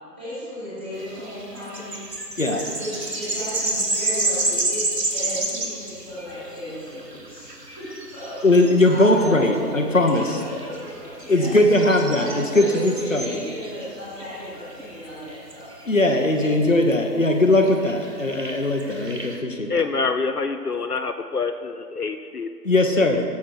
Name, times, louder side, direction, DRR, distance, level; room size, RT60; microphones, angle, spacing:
voice 1, 0.2-2.0 2.7-4.8 5.1-11.5 12.1-16.0 16.3-16.8, equal, 5° right, -15 dB, 2.1 m, -35 dB
sound 1, 0.9-19.4, right 2 dB, 75° right, 1.9 m, -31 dB
voice 2, 8.4-10.3 11.3-13.3 15.9-19.7 22.6-23.2, left 2 dB, 50° left, 3 dB, 1.1 m, -19 dB
voice 3, 19.7-22.5 23.0-23.2, left 4 dB, 65° left, 8 dB, 0.7 m, -26 dB
17.0 x 7.2 x 4.7 m, 2.3 s
figure-of-eight pair, 165°, 49 cm